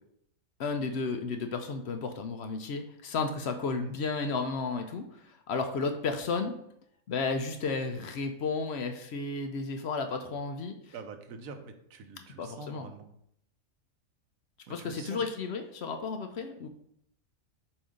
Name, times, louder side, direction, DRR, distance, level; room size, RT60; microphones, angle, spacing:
voice 1, 0.6-6.6 7.1-10.9 12.4-12.9 14.7-16.7, left 4 dB, 60° left, 6 dB, 0.8 m, -33 dB
voice 2, 10.9-13.1 14.7-15.2, right 3 dB, 85° right, 6 dB, 1.2 m, -45 dB
7.2 x 2.7 x 4.9 m, 0.72 s
omnidirectional pair, 1.4 m